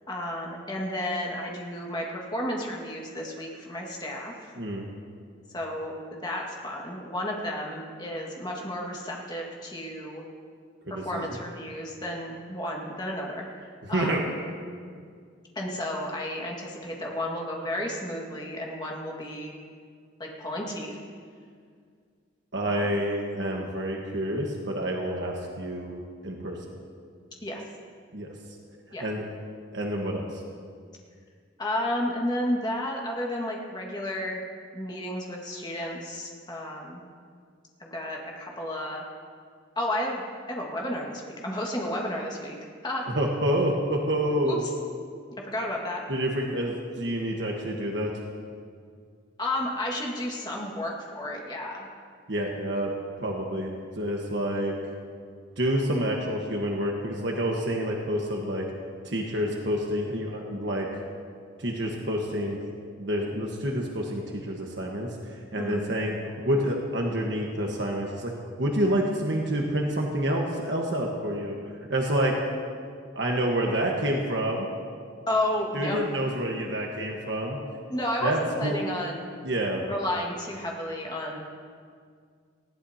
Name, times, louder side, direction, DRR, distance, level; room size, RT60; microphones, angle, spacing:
voice 1, 0.1-4.5 5.5-10.2 10.9-14.4 15.6-19.5 20.2-21.0 22.6-22.9 27.4-27.6 28.9-29.1 31.6-34.4 34.7-37.0 37.8-39.0 39.8-40.2 40.5-42.6 42.8-43.1 44.4-44.5 45.4-46.1 49.4-51.9 65.5-65.8 75.3-76.0 77.9-79.3 79.8-81.4, left 1 dB, 20° left, -1 dB, 1.8 m, -32 dB
voice 2, 10.9-11.2 13.9-14.2 22.5-26.0 26.2-26.6 28.1-28.3 29.0-29.3 29.7-30.4 43.1-44.6 46.1-48.1 52.3-54.7 55.6-58.7 59.0-61.0 61.6-62.6 63.0-68.3 68.6-71.5 71.9-72.4 73.1-74.7 75.7-77.6 78.2-78.8 79.4-79.8, equal, 60° right, 0 dB, 1.4 m, -28 dB
20.0 x 15.5 x 2.9 m, 2.1 s
head